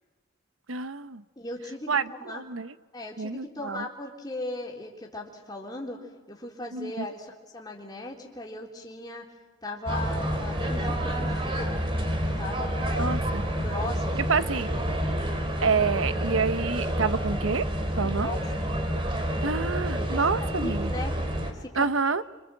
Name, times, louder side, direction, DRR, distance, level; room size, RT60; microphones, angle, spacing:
voice 1, 0.7-1.2 1.9-2.7 3.2-3.9 6.7-7.1 11.3-11.4 12.9-13.5 14.3-14.7 15.6-17.6 18.0-18.4 19.4-20.9 21.8-22.2, right 5 dB, 90° right, 12 dB, 1.0 m, -28 dB
voice 2, 1.4-2.4 2.9-6.0 6.3-9.3 9.6-11.8 12.4-13.2 13.6-14.5 18.0-18.5 20.0-21.2 21.5-22.1, left 1 dB, 20° left, -1 dB, 3.7 m, -38 dB
sound 1, 9.9-21.5, equal, 25° right, 2.8 m, -29 dB
27.5 x 26.0 x 7.8 m, 1.2 s
head